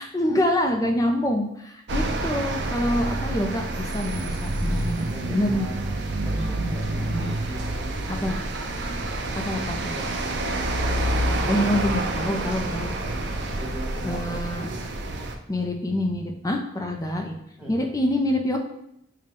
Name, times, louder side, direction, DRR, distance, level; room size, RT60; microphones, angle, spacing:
voice 1, 0.0-5.7 7.1-7.3 8.2-8.4 9.4-9.9 11.5-12.9 14.0-14.7 15.5-17.4 17.7-18.6, left 1 dB, 20° left, 3 dB, 0.4 m, -26 dB
sound 1, 1.9-15.3, right 1 dB, 60° right, 0.5 m, -28 dB
voice 2, 5.0-8.5 9.3-11.4 13.5-14.9 17.6-17.9, right 1 dB, 5° right, -5 dB, 1.0 m, -39 dB
5.1 x 2.2 x 3.4 m, 0.78 s
head